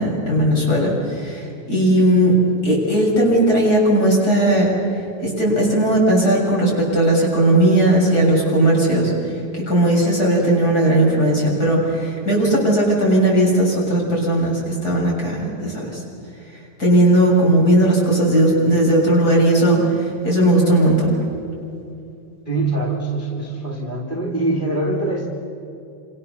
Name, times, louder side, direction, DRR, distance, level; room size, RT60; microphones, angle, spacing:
voice 1, 0.0-4.7 5.2-16.0 16.8-21.1, right 1 dB, 20° left, -2 dB, 7.4 m, -17 dB
voice 2, 22.4-25.3, right 2 dB, 15° right, -1 dB, 1.7 m, -23 dB
29.5 x 27.0 x 7.0 m, 2.7 s
omnidirectional pair, 5.0 m